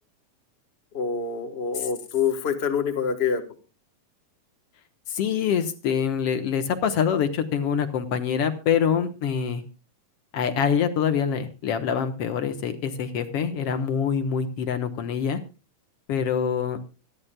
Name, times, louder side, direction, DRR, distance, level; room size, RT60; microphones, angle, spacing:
voice 1, 0.9-3.4, left 6 dB, 40° left, 6 dB, 0.9 m, -26 dB
voice 2, 5.1-9.6 10.3-15.4 16.1-16.8, left 7 dB, 60° left, 8 dB, 1.9 m, -25 dB
24.5 x 10.5 x 2.2 m, 0.32 s
omnidirectional pair, 3.4 m